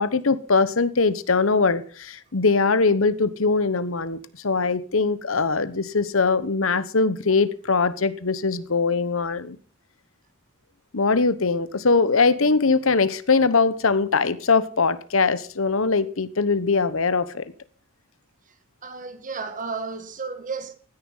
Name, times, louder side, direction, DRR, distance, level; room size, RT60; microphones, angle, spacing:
voice 1, 0.0-4.2 4.4-9.6 10.9-17.5, left 4 dB, 65° left, 1.1 m, -21 dB
voice 2, 18.4-20.7, right 4 dB, 40° right, 1.4 m, -33 dB
16.0 x 10.0 x 5.6 m
head